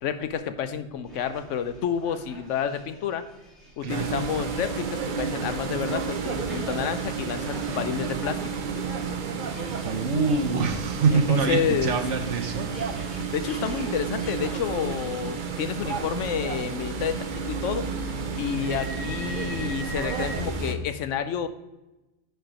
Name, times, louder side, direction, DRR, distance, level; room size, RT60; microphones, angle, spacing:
voice 1, 0.0-3.3 3.8-8.6 11.1-12.0 13.3-17.9 18.4-21.5, left 8 dB, 90° left, 10 dB, 1.0 m, -30 dB
sound 1, 1.1-20.4, right 1 dB, ahead, 2.1 m, -46 dB
voice 2, 3.8-4.2 9.8-12.7, right 4 dB, 75° right, 5 dB, 1.3 m, -25 dB
sound 2, 3.9-20.8, right 5 dB, 50° right, 0.7 m, -31 dB
9.3 x 4.5 x 5.1 m, 1.0 s
omnidirectional pair, 1.2 m